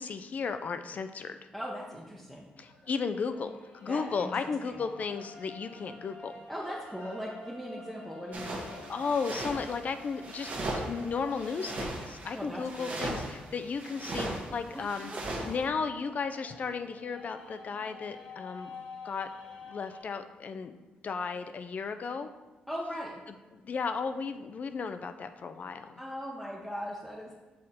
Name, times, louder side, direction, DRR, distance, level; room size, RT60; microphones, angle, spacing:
voice 1, 0.0-1.4 2.6-6.3 8.9-15.1 15.4-18.7 19.0-19.3 19.7-20.8 21.0-22.3 23.5-26.0, left 5 dB, 50° left, 9 dB, 0.4 m, -34 dB
voice 2, 1.5-2.5 3.9-4.3 4.6-4.8 6.5-8.8 12.3-13.0 14.7-15.4 22.7-23.1 26.0-27.3, equal, ahead, -4 dB, 0.8 m, -39 dB
sound 1, 2.6-20.0, left 2 dB, 85° left, 1.5 m, -50 dB
sound 2, 8.3-15.6, right 2 dB, 50° right, 1.3 m, -38 dB
6.4 x 3.7 x 4.2 m, 1.2 s
cardioid pair, 85°, 3 cm